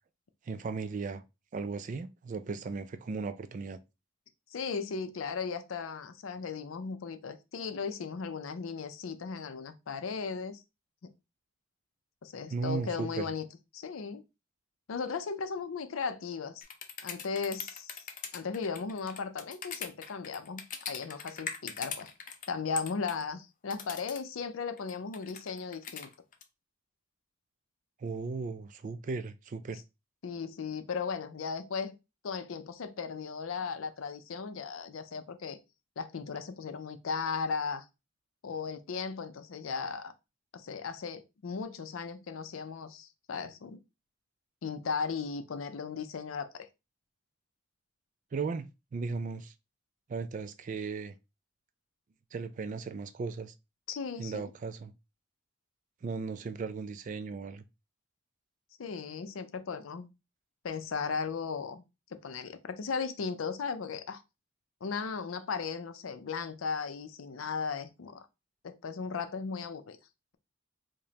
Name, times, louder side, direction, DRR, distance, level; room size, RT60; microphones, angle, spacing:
voice 1, 0.5-1.2 1.5-3.8 12.5-13.3 28.0-29.8 48.3-49.5 50.1-51.1 52.3-53.5 54.2-54.9 56.0-57.6, right 4 dB, 40° right, 0.3 m, -36 dB
voice 2, 4.5-10.6 12.2-13.5 13.7-14.2 14.9-16.6 17.0-18.1 18.3-20.6 20.9-22.1 22.5-26.1 30.2-31.9 32.2-35.6 36.0-37.8 38.4-40.1 40.5-43.8 44.6-46.7 53.9-54.5 58.8-60.1 60.6-61.8 62.1-64.2 64.8-68.3 68.6-70.0, left 5 dB, 90° left, 0.5 m, -36 dB
sound 1, 16.6-22.5 22.8-23.2 23.7-24.2 24.8-26.4, left 7 dB, 40° left, 0.5 m, -41 dB
4.9 x 2.2 x 2.8 m
head